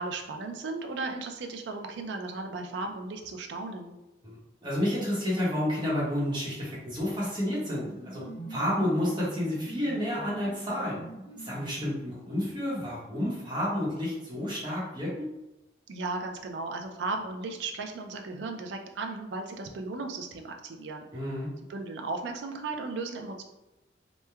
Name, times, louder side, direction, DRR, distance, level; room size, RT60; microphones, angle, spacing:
voice 1, 0.0-3.9 15.9-21.1 21.7-23.4, right 3 dB, 65° right, 4 dB, 0.4 m, -35 dB
voice 2, 4.6-8.2 8.5-11.0 11.4-15.3 21.1-21.5, left 1 dB, 25° right, -7 dB, 0.9 m, -30 dB
sound 1, 7.6-12.5, right 2 dB, 25° left, 0.7 m, -44 dB
3.0 x 2.1 x 2.2 m, 0.97 s
head